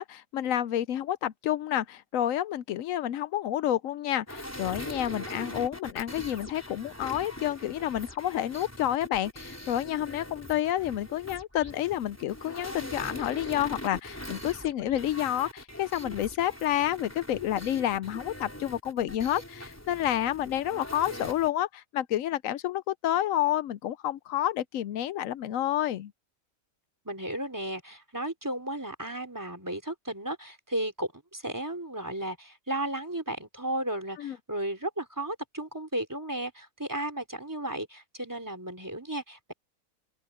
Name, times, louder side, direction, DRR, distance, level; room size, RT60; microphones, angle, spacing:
voice 1, 0.0-26.1 34.2-34.4, left 12 dB, 75° left, 1.0 m, -29 dB
sound 1, 4.3-21.5, equal, 10° left, 4.3 m, -42 dB
voice 2, 27.1-39.5, right 1 dB, 15° right, 3.9 m, -34 dB
omnidirectional pair, 1.4 m